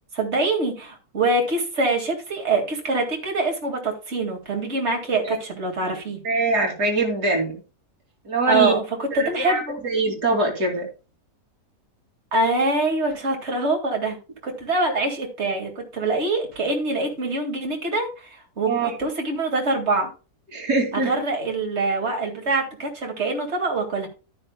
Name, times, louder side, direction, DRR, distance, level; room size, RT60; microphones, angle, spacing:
voice 1, 0.1-6.2 8.5-9.8 12.3-14.2 14.4-20.1 20.9-24.1, right 2 dB, 45° right, 2 dB, 2.3 m, -24 dB
voice 2, 6.2-7.6 8.2-8.7 9.1-10.9 18.7-18.9 20.5-21.1, right 3 dB, 75° right, 0 dB, 3.2 m, -23 dB
11.0 x 9.7 x 2.2 m, 0.31 s
omnidirectional pair, 1.7 m